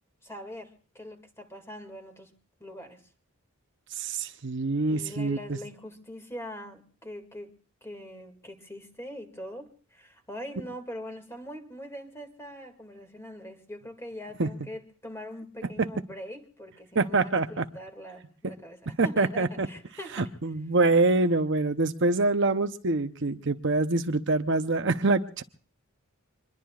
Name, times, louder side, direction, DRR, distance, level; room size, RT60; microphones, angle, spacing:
voice 1, 0.2-2.3 2.6-3.0 4.9-7.5 7.8-20.3, equal, 10° left, 2.2 m, -42 dB
voice 2, 4.0-5.6 14.4-14.5 15.8-15.9 16.9-17.6 19.0-19.7 20.2-25.4, right 3 dB, 55° right, 0.8 m, -25 dB
25.5 x 22.0 x 2.4 m
head